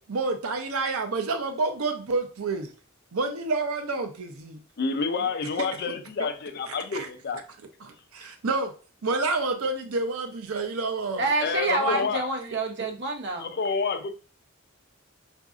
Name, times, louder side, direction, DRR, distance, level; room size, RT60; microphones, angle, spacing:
voice 1, 0.1-2.7 3.1-4.6 6.7-7.1 7.8-8.7 9.0-11.3 11.7-12.1, right 3 dB, 90° right, 0.6 m, -29 dB
voice 2, 4.8-7.4 11.4-12.3 13.4-14.1, left 4 dB, 50° left, 0.4 m, -28 dB
voice 3, 11.2-13.5, right 3 dB, 55° right, 0.8 m, -27 dB
4.7 x 2.6 x 2.4 m
head